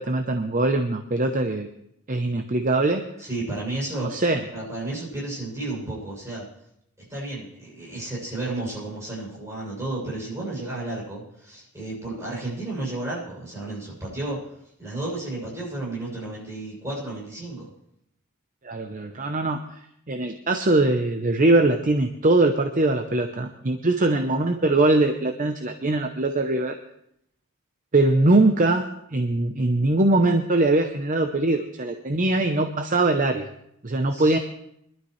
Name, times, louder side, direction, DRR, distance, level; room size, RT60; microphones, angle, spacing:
voice 1, 0.0-1.7 2.1-3.0 4.1-4.4 18.6-19.6 20.1-26.8 27.9-28.8 29.1-33.5 33.8-34.4, right 2 dB, 35° right, 6 dB, 0.7 m, -22 dB
voice 2, 3.2-4.1 4.5-6.5 7.1-14.4 14.8-17.7 34.1-34.4, right 2 dB, 15° right, -7 dB, 7.0 m, -32 dB
23.5 x 12.0 x 3.2 m, 0.75 s
head